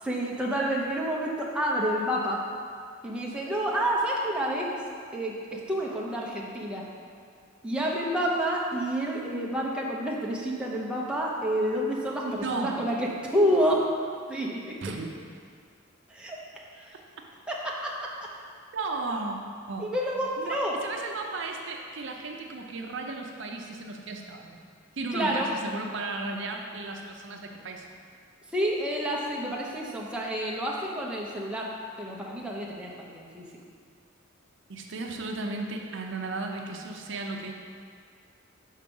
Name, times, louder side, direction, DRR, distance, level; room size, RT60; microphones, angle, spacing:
voice 1, 0.0-2.4 3.0-4.7 5.1-6.8 7.6-13.8 14.3-14.6 16.1-16.4 16.7-16.9 17.5-17.6 17.8-17.9 19.8-20.7 25.1-25.5 28.5-31.7 32.0-33.4, equal, 5° right, -4 dB, 0.8 m, -29 dB
voice 2, 12.2-12.8 14.8-15.1 18.7-19.4 19.7-19.9 20.4-24.6 25.0-28.0 34.7-37.5, right 3 dB, 60° right, 1 dB, 0.6 m, -35 dB
6.4 x 4.6 x 5.4 m, 2.1 s
head